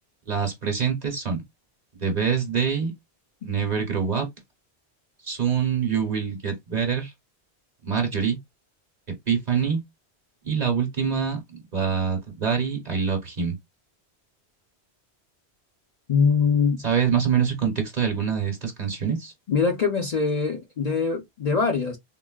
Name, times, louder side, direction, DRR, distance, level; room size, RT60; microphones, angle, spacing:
voice 1, 0.3-1.4 2.0-2.9 3.4-4.3 5.2-7.1 7.8-8.4 9.3-9.8 10.4-13.5 16.8-19.3, right 6 dB, 45° right, 0.8 m, -25 dB
voice 2, 16.1-16.8 19.5-22.0, left 5 dB, 45° left, 0.6 m, -23 dB
3.8 x 2.1 x 2.2 m
omnidirectional pair, 1.1 m